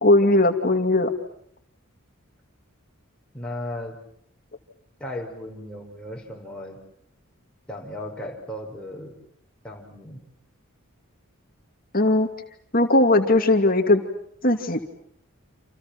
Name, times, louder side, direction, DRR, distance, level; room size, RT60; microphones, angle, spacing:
voice 1, 0.0-1.1 11.9-12.3 12.7-14.0 14.4-14.8, left 2 dB, 40° left, 5 dB, 2.5 m, -18 dB
voice 2, 3.3-4.0 5.0-6.8 7.7-9.1 9.6-10.2, left 1 dB, 5° left, -1 dB, 5.5 m, -36 dB
29.5 x 28.5 x 6.1 m, 0.68 s
head